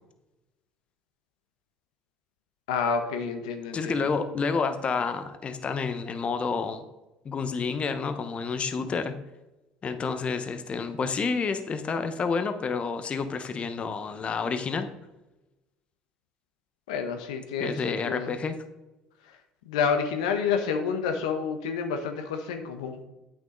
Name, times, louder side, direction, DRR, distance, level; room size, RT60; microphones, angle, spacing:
voice 1, 2.7-4.0 16.9-18.3 19.7-23.0, left 6 dB, 90° left, 6 dB, 0.9 m, -29 dB
voice 2, 3.7-6.8 7.2-9.2 9.8-14.9 17.6-18.6, left 5 dB, 40° left, 9 dB, 0.9 m, -29 dB
8.4 x 6.3 x 3.8 m, 1.0 s
supercardioid pair, 80°, 3 cm